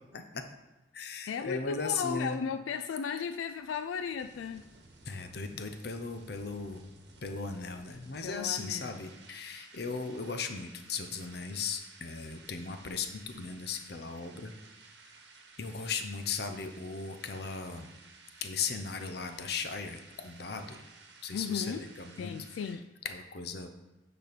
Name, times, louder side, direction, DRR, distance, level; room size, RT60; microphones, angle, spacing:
voice 1, 0.1-0.4 0.9-2.5 5.1-6.9 7.2-14.5 15.6-17.9 18.4-20.8 21.2-22.3 22.6-22.8 23.0-23.7, left 5 dB, 55° left, 7 dB, 0.7 m, -37 dB
voice 2, 1.3-4.7 8.2-9.0 21.3-21.9 22.2-22.9, left 6 dB, 90° left, 10 dB, 0.3 m, -35 dB
sound 1, 3.1-22.7, right 3 dB, 60° right, 1.2 m, -56 dB
9.2 x 4.3 x 5.1 m, 1.1 s
head